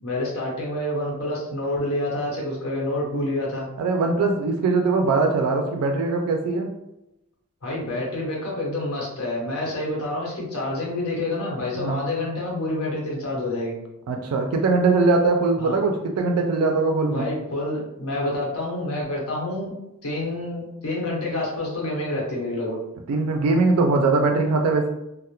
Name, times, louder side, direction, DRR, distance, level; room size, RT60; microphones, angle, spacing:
voice 1, 0.0-3.7 7.6-13.8 15.6-15.8 17.1-19.7 20.0-22.8, left 1 dB, 80° left, -3 dB, 0.9 m, -28 dB
voice 2, 3.8-6.7 11.8-12.0 14.1-17.3 23.1-24.9, right 3 dB, 85° right, 3 dB, 0.3 m, -21 dB
2.2 x 2.0 x 2.8 m, 0.89 s
head